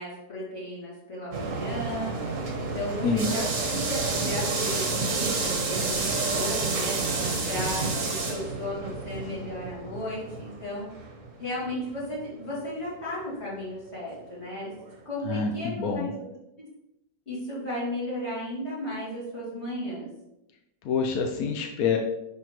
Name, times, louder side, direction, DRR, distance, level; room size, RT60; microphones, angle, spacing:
voice 1, 0.0-3.4 3.7-7.0 7.5-10.9 11.4-14.7 15.1-16.1 16.6-16.7 17.3-20.1, left 1 dB, 40° left, -7 dB, 2.3 m, -35 dB
sound 1, 1.3-12.2 12.5-12.6 13.3-13.4 14.9-15.0, right 3 dB, 50° right, 1.3 m, -30 dB
voice 2, 15.2-16.1 20.8-22.0, left 5 dB, 65° left, 4 dB, 1.0 m, -26 dB
9.7 x 3.6 x 3.1 m, 0.88 s
omnidirectional pair, 1.9 m